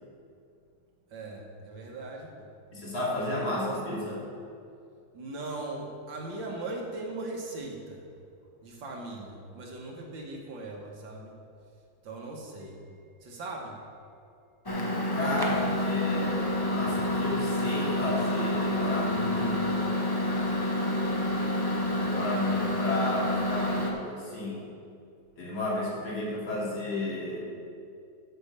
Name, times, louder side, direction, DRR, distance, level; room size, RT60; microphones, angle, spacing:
voice 1, 1.1-2.5 3.4-4.1 5.1-8.0 8.6-11.3 12.0-13.0 13.2-13.8, right 2 dB, 65° right, 0 dB, 2.0 m, -39 dB
voice 2, 2.7-4.2 15.1-19.9 22.0-24.6 25.4-27.4, left 1 dB, 70° left, -6 dB, 3.4 m, -32 dB
Microwave oven, 14.7-23.9, left 1 dB, 30° left, 0.4 m, -28 dB
8.6 x 6.9 x 6.7 m, 2.4 s
omnidirectional pair, 2.2 m